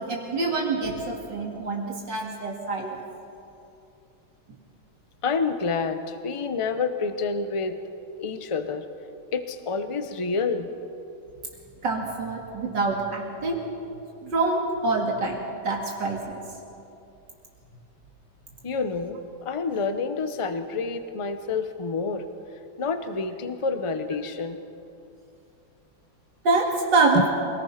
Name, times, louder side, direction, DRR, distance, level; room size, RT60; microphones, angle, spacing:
voice 1, 0.0-3.0 11.8-13.6 14.2-16.4 26.4-27.3, right 3 dB, 65° right, -1 dB, 2.8 m, -26 dB
voice 2, 5.2-7.8 8.2-8.9 9.3-10.7 18.6-22.2 22.8-24.6 27.1-27.3, left 4 dB, 30° left, 9 dB, 0.5 m, -28 dB
25.0 x 19.0 x 5.8 m, 2.7 s
omnidirectional pair, 2.1 m